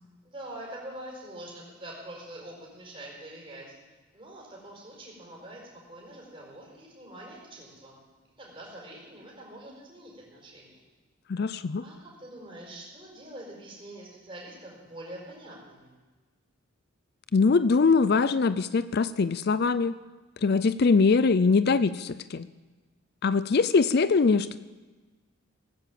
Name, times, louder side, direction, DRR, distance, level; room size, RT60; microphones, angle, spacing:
voice 1, 0.2-3.7 4.1-5.6 5.9-8.0 8.4-10.7 11.8-15.9, right 1 dB, 25° right, -3 dB, 5.0 m, -44 dB
voice 2, 11.3-11.8 17.3-20.0 20.4-22.5 23.2-24.6, left 4 dB, 50° left, 15 dB, 0.4 m, -22 dB
18.0 x 10.0 x 7.6 m, 1.3 s
head